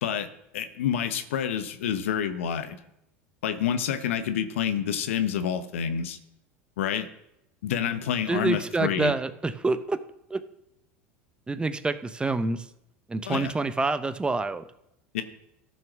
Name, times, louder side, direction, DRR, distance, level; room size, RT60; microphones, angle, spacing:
voice 1, 0.0-2.8 3.4-6.2 6.8-7.1 7.6-9.1 13.2-13.5 15.1-15.2, left 8 dB, 75° left, 10 dB, 1.0 m, -28 dB
voice 2, 8.3-10.0 10.3-10.4 11.5-12.7 13.1-14.6, right 3 dB, 15° right, 12 dB, 0.9 m, -27 dB
13.5 x 6.1 x 6.2 m, 0.82 s
hypercardioid pair, 80°, 7 cm